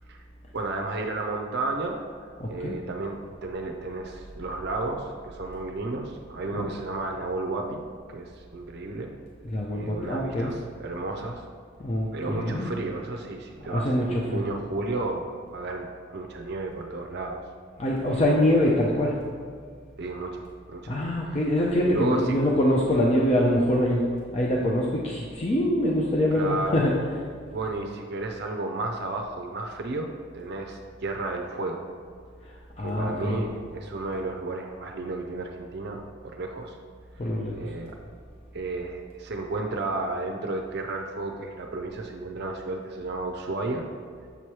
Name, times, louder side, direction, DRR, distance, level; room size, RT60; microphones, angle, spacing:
voice 1, 0.5-2.0 2.5-7.8 8.1-9.1 9.7-11.4 12.1-17.5 20.0-20.9 21.3-21.4 21.8-22.4 26.3-26.8 27.5-31.8 32.8-36.8 37.5-38.0 38.5-43.8, right 2 dB, 55° right, 2 dB, 0.5 m, -32 dB
voice 2, 2.4-2.7 6.5-6.7 9.4-10.5 11.8-12.7 13.7-14.4 17.8-19.2 20.9-24.0 24.3-26.9 32.4-33.4 37.2-37.7, left 1 dB, 30° left, -3 dB, 0.5 m, -24 dB
7.0 x 3.0 x 4.7 m, 2.1 s
head